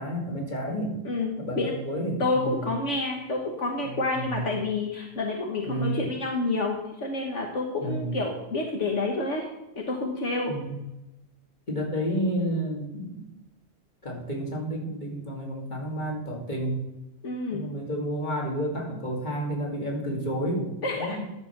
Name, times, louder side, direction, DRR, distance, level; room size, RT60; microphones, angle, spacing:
voice 1, 0.0-1.0 1.4-2.7 3.8-4.5 5.6-6.1 7.8-8.2 10.5-10.7 11.7-13.3 14.0-16.8 17.5-21.2, right 1 dB, 35° left, -1 dB, 2.6 m, -31 dB
voice 2, 1.0-1.7 2.2-9.5 9.8-10.5 17.2-17.6 20.8-21.2, left 2 dB, 70° left, 1 dB, 1.6 m, -29 dB
11.5 x 7.0 x 5.8 m, 0.93 s
omnidirectional pair, 1.3 m